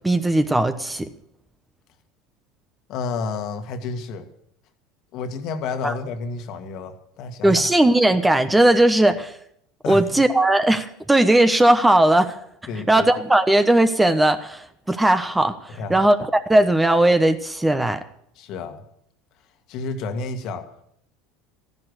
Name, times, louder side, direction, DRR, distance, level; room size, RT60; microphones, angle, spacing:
voice 1, 0.0-1.1 5.8-5.9 7.4-9.3 9.9-12.4 12.9-15.6 15.9-18.0, right 1 dB, 10° right, 10 dB, 1.1 m, -18 dB
voice 2, 2.9-4.3 5.1-7.7 9.8-10.2 12.7-13.1 15.7-16.1 18.4-18.8 19.7-20.7, left 4 dB, 55° left, 7 dB, 1.7 m, -30 dB
14.5 x 11.0 x 6.5 m, 0.72 s
hypercardioid pair, 75°, 0 cm